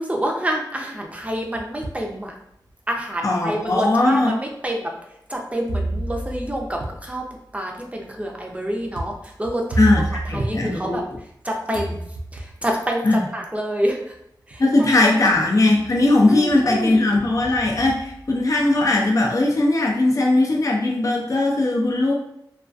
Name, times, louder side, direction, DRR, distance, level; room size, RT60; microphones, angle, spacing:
voice 1, 0.0-2.4 2.9-4.9 5.3-7.2 7.5-9.9 10.3-11.0 11.4-12.0 12.3-14.1 14.5-14.9 16.3-17.0, equal, 15° right, 1 dB, 0.5 m, -27 dB
sound 1, 1.2-2.1 2.7-2.8 3.7-3.8 5.7-11.4 11.7-12.7 13.9-14.0 14.5-14.9 15.3-16.1 16.5-18.8, right 2 dB, 75° right, 0.4 m, -31 dB
voice 2, 3.2-4.3 9.8-11.0 13.0-13.3 14.6-22.1, left 2 dB, 45° left, -1 dB, 0.4 m, -19 dB
2.3 x 2.3 x 2.4 m, 0.77 s
wide cardioid pair, 70°, 8 cm